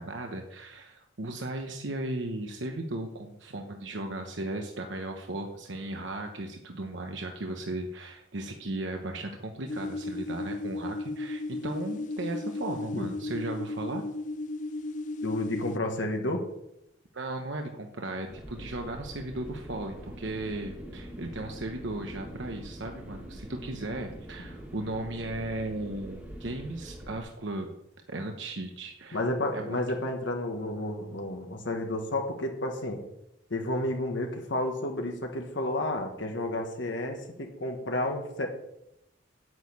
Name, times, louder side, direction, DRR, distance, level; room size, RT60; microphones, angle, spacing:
voice 1, 0.0-14.0 17.1-27.7 28.1-29.2 29.5-29.8, right 2 dB, 70° right, 4 dB, 1.0 m, -36 dB
sound 1, 9.7-15.8, left 2 dB, 40° left, 0.4 m, -35 dB
voice 2, 15.2-16.5 29.1-33.0 33.5-38.5, left 1 dB, 70° left, 3 dB, 1.5 m, -31 dB
sound 2, 18.3-27.2, equal, 10° right, 1.7 m, -44 dB
8.8 x 6.5 x 8.6 m, 0.83 s
head